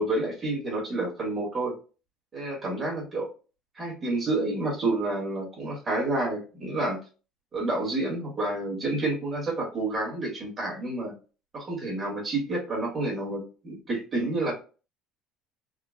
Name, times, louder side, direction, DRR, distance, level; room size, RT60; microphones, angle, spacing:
voice 1, 0.0-1.7 2.3-3.3 3.8-7.0 7.5-11.1 11.5-14.5, right 2 dB, 25° right, -2 dB, 1.6 m, -29 dB
3.7 x 2.4 x 2.3 m, 0.34 s
cardioid pair, 155°, 0 cm